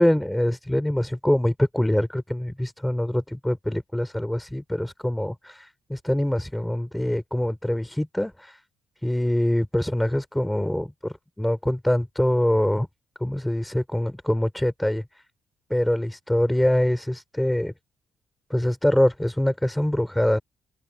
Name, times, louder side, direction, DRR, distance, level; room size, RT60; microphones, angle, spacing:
voice 1, 0.0-8.6 9.0-12.9 13.2-15.2 15.7-17.7 18.5-20.4, left 1 dB, 5° left, 4.2 m, -24 dB
open air
cardioid pair, 90°, 0 cm